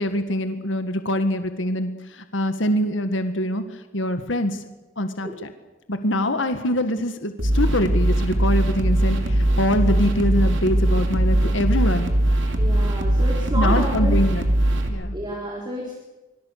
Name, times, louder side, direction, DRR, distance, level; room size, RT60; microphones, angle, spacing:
voice 1, 0.0-3.6 3.9-4.6 5.0-5.5 5.9-12.1 13.5-14.5 14.9-15.2, left 1 dB, 75° left, 8 dB, 1.8 m, -24 dB
sound 1, 7.4-14.9, right 1 dB, 70° right, 3.3 m, -20 dB
voice 2, 12.6-14.2 15.1-15.9, equal, 25° right, -1 dB, 4.3 m, -30 dB
25.5 x 24.5 x 6.7 m, 1.1 s
head